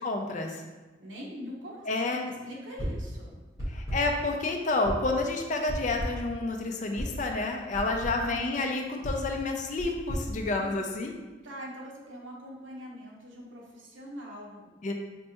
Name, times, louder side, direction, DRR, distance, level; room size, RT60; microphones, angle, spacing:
voice 1, 0.0-0.6 1.9-2.3 3.7-11.1 14.8-14.9, left 2 dB, 40° left, 3 dB, 0.4 m, -29 dB
voice 2, 1.0-3.3 7.9-8.6 10.6-10.7 11.4-14.9, equal, 80° right, -3 dB, 1.0 m, -43 dB
sound 1, 2.8-3.1 3.6-4.2 4.8-5.2 5.7-6.3 7.0-7.2 7.7-8.3 9.0-11.1, equal, 20° right, 1.5 m, -35 dB
4.3 x 3.2 x 2.8 m, 1.2 s
head